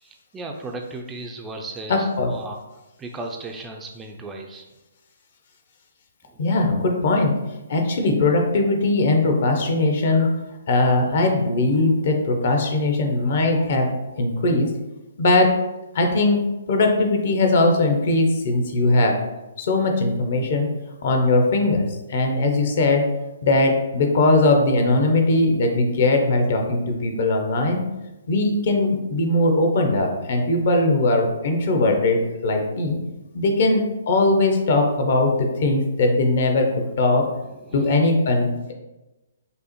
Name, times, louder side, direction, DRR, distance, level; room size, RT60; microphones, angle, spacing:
voice 1, 0.0-2.6 3.0-4.7 6.3-6.5 33.2-33.3 37.6-38.0, right 2 dB, 15° right, 2 dB, 0.4 m, -36 dB
voice 2, 1.9-2.3 6.4-7.3 7.7-10.3 10.7-14.7 15.2-15.5 15.9-19.1 19.6-20.7 21.0-23.0 23.4-27.8 28.3-33.0 33.3-36.7 37.0-37.3 37.7-38.7, left 2 dB, 55° left, 3 dB, 0.7 m, -20 dB
5.4 x 2.0 x 3.0 m, 1.0 s
figure-of-eight pair, 135°, 0 cm